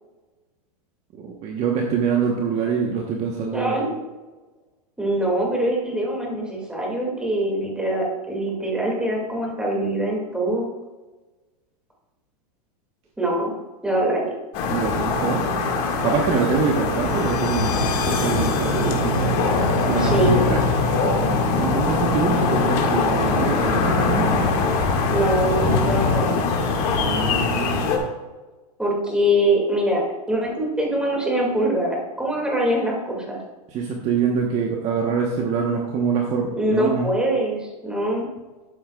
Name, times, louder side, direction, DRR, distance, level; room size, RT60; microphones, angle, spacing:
voice 1, 1.2-3.8 14.7-15.4 16.0-19.5 19.9-20.6 21.5-24.5 27.0-28.0 33.7-37.1, right 6 dB, 35° right, 0 dB, 1.2 m, -25 dB
voice 2, 3.5-3.9 5.0-10.7 13.2-13.5 13.8-14.4 20.0-20.4 25.1-26.4 28.8-33.4 36.6-38.3, right 1 dB, 5° right, -2 dB, 2.4 m, -23 dB
sound 1, 14.5-28.0, left 3 dB, 40° left, 2.0 m, -22 dB
sound 2, 16.7-27.3, left 7 dB, 80° left, 3.2 m, -37 dB
12.5 x 8.7 x 2.4 m, 1.2 s
supercardioid pair, 140°, 20 cm